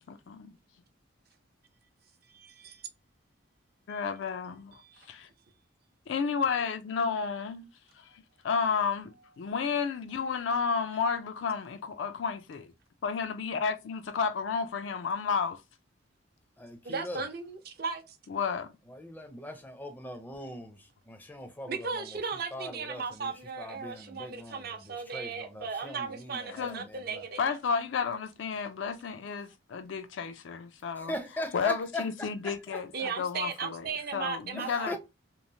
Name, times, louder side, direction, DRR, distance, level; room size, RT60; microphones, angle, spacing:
voice 1, 0.1-0.6 3.9-4.8 5.1-5.3 6.1-7.7 8.0-8.1 8.4-12.7 13.0-15.6 18.3-18.7 26.5-26.9 27.4-31.1 31.5-35.0, left 5 dB, 65° left, 0.4 m, -32 dB
voice 2, 2.3-2.8 3.9-4.0 4.8-5.1 16.9-18.2 21.7-27.6 32.9-35.0, right 5 dB, 50° right, 0.5 m, -37 dB
voice 3, 16.6-17.2 18.9-22.2 22.5-27.2 31.0-33.1 34.5-35.0, left 1 dB, 10° left, 0.5 m, -40 dB
3.0 x 2.0 x 2.6 m
head